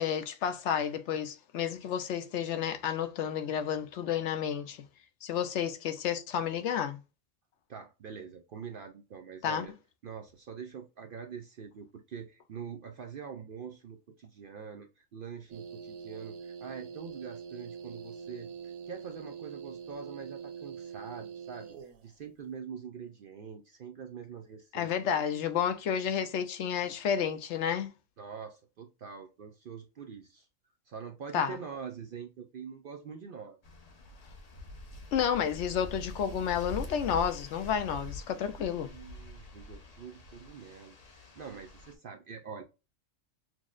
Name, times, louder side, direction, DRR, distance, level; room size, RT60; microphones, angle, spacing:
voice 1, 0.0-4.8 5.2-7.0 9.4-9.7 24.7-27.9 31.3-31.6 35.1-38.9, left 8 dB, 70° left, 0.8 m, -31 dB
voice 2, 7.7-9.7 10.0-24.9 25.3-25.5 28.2-30.5 30.9-33.6 38.9-42.6, right 6 dB, 65° right, 0.5 m, -44 dB
sound 1, 15.5-22.0, right 6 dB, 85° right, 1.0 m, -44 dB
sound 2, 33.6-41.9, left 2 dB, 40° left, 0.7 m, -45 dB
6.0 x 2.0 x 2.4 m
omnidirectional pair, 1.3 m